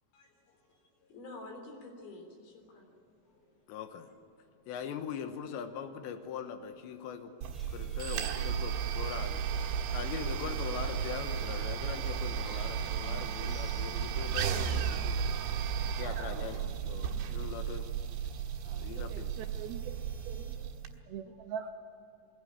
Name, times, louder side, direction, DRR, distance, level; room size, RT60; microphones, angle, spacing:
voice 1, 0.1-2.9 3.3-3.5 9.3-9.4 18.6-18.9 20.5-20.7, left 2 dB, 60° left, 2 dB, 5.4 m, -50 dB
sound 1, 3.1-3.2 3.5-17.6, left 1 dB, 25° left, 4.3 m, -54 dB
voice 2, 3.7-4.1 4.7-7.3 7.7-15.2 15.6-17.9 18.8-19.3, left 7 dB, 80° left, 8 dB, 3.4 m, -42 dB
sound 2, 7.4-20.9, right 7 dB, 85° right, 3.8 m, -34 dB
sound 3, 7.5-15.5, equal, ahead, 4.5 m, -61 dB
voice 3, 19.0-20.0 20.3-20.7 21.1-21.7, right 8 dB, 70° right, 5 dB, 2.6 m, -42 dB
22.5 x 17.0 x 9.1 m, 2.6 s
omnidirectional pair, 5.1 m